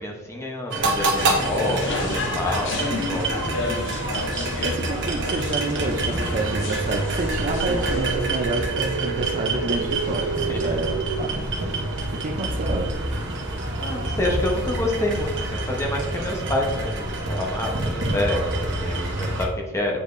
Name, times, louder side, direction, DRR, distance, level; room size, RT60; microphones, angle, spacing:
voice 1, 0.0-4.0 10.1-10.8 11.7-11.8 13.8-20.0, left 1 dB, 15° left, 0 dB, 0.9 m, -28 dB
sound 1, 0.7-19.5, right 2 dB, 55° right, 1.0 m, -27 dB
sound 2, 1.1-9.4, left 2 dB, 55° left, 0.7 m, -32 dB
voice 2, 4.6-11.4 12.1-12.9, right 2 dB, 35° right, 4 dB, 0.5 m, -29 dB
sound 3, 6.3-11.3, right 6 dB, 90° right, 0.3 m, -31 dB
8.2 x 5.0 x 2.6 m, 1.2 s
head